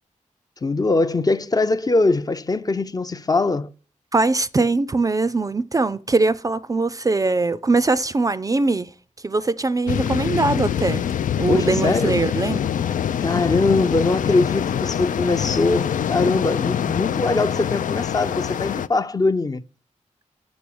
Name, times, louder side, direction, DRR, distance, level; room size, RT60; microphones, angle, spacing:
voice 1, 0.6-3.7 11.5-12.2 13.2-19.6, left 3 dB, 30° left, 0.5 m, -22 dB
voice 2, 4.1-8.9 9.2-11.0 11.4-12.7, right 3 dB, 25° right, 0.4 m, -21 dB
sound 1, 9.9-18.9, left 9 dB, 90° left, 0.4 m, -24 dB
6.8 x 6.2 x 6.9 m
wide cardioid pair, 130°, 13 cm